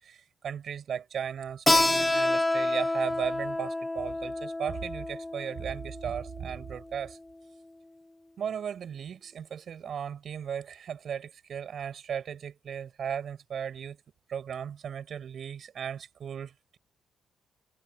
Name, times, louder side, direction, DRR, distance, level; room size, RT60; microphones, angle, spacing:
voice 1, 0.0-7.2 8.4-14.0 14.3-16.8, right 8 dB, 55° right, 6.3 m, -36 dB
Keyboard (musical), 1.7-6.9, left 2 dB, 15° left, 0.9 m, -28 dB
cardioid pair, 90°, 0 cm